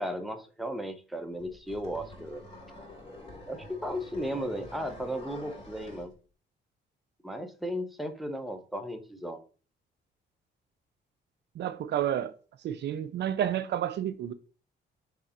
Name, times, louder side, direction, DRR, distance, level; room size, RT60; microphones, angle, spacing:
voice 1, 0.0-2.5 3.5-6.1 7.2-9.4, equal, ahead, 0.7 m, -35 dB
sound 1, 1.4-6.1, left 1 dB, 25° left, 2.3 m, -47 dB
voice 2, 11.6-12.3 12.6-14.3, right 10 dB, 60° right, 0.4 m, -30 dB
3.7 x 3.3 x 4.2 m
cardioid pair, 90°, 20 cm